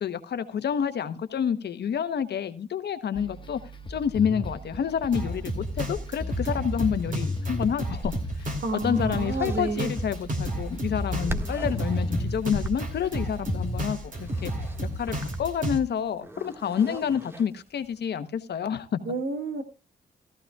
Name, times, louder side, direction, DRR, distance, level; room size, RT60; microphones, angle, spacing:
voice 1, 0.0-3.6 3.9-14.5 15.0-19.0, left 8 dB, 70° left, 0.9 m, -28 dB
sound 1, 3.2-14.1, left 1 dB, 25° left, 1.3 m, -36 dB
Drum kit, 5.1-15.8, equal, 50° right, 3.0 m, -32 dB
sound 2, 7.6-18.0, right 1 dB, 15° right, 1.6 m, -39 dB
voice 2, 8.6-9.9 19.1-19.6, right 3 dB, 70° right, 1.8 m, -30 dB
14.5 x 14.5 x 2.3 m
supercardioid pair, 50°, 18 cm